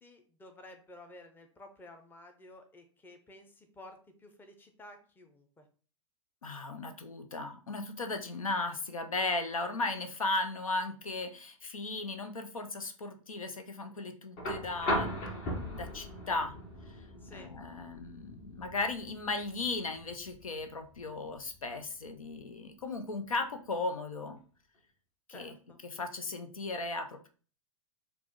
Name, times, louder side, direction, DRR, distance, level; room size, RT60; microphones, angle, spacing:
voice 1, 0.0-5.6 17.2-17.5 25.3-25.8, left 1 dB, 10° left, 5 dB, 0.7 m, -53 dB
voice 2, 6.4-15.2 15.7-16.6 17.3-24.4 25.3-25.5 25.8-27.3, left 3 dB, 80° left, 7 dB, 0.6 m, -36 dB
sound 1, 14.4-22.4 23.8-23.9, equal, 45° left, 1.5 m, -39 dB
4.7 x 2.5 x 3.7 m, 0.40 s
figure-of-eight pair, 95°, 17 cm